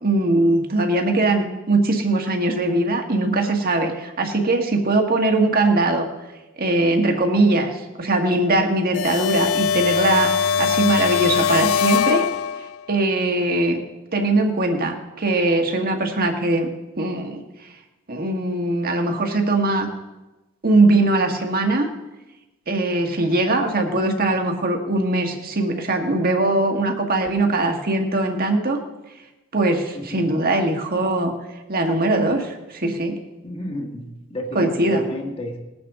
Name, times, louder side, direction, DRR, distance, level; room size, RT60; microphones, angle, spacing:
voice 1, 0.0-6.1 6.6-12.3 12.9-13.8 14.1-16.7 17.0-17.4 18.1-19.9 20.6-21.9 22.7-28.8 29.5-31.3 31.7-33.2 34.5-35.1, right 2 dB, 45° right, 3 dB, 1.6 m, -21 dB
sound 1, 8.9-12.8, left 7 dB, 75° left, 0.5 m, -21 dB
voice 2, 29.9-30.3 33.4-35.6, equal, 30° left, 1 dB, 1.5 m, -32 dB
20.0 x 9.4 x 3.6 m, 1.1 s
head